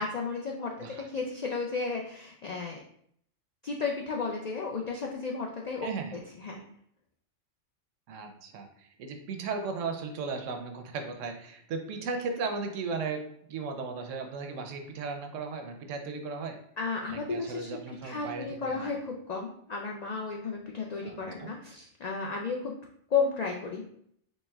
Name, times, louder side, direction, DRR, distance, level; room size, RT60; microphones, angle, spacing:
voice 1, 0.0-2.8 3.6-6.7 16.8-22.8 23.1-23.9, left 4 dB, 75° left, 0 dB, 0.3 m, -33 dB
voice 2, 5.8-6.2 8.1-16.6 17.1-19.0 21.0-21.5, right 4 dB, 85° right, 5 dB, 1.0 m, -36 dB
4.2 x 3.3 x 2.3 m, 0.68 s
omnidirectional pair, 1.2 m